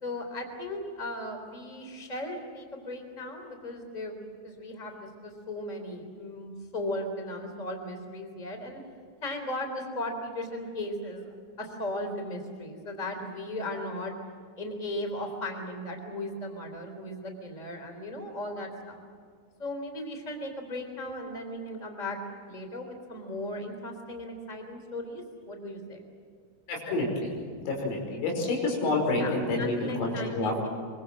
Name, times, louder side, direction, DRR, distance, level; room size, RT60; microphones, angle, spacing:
voice 1, 0.0-8.8 9.2-14.1 14.6-19.0 19.6-22.2 22.5-26.0 29.1-30.7, left 1 dB, 10° left, 4 dB, 3.0 m, -37 dB
voice 2, 26.7-27.3 27.6-30.5, left 2 dB, 90° left, 0 dB, 8.3 m, -28 dB
25.0 x 24.5 x 7.6 m, 2.1 s
omnidirectional pair, 5.9 m